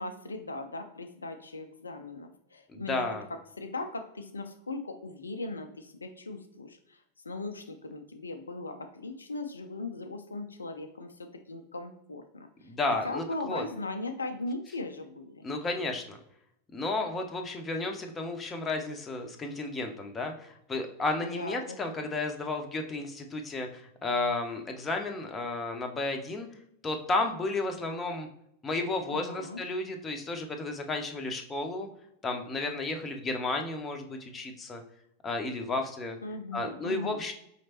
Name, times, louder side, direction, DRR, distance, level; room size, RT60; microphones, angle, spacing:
voice 1, 0.0-12.7 13.0-15.5 21.4-21.9 29.1-29.6 36.2-37.2, left 2 dB, 75° left, 6 dB, 0.4 m, -39 dB
voice 2, 2.7-3.2 12.6-13.7 15.4-16.2 16.7-26.5 26.8-28.3 28.6-31.9 32.2-34.8 35.2-36.2 36.5-37.3, left 2 dB, 20° left, 4 dB, 0.6 m, -32 dB
5.0 x 3.0 x 2.9 m, 0.77 s
figure-of-eight pair, 90°, 0 cm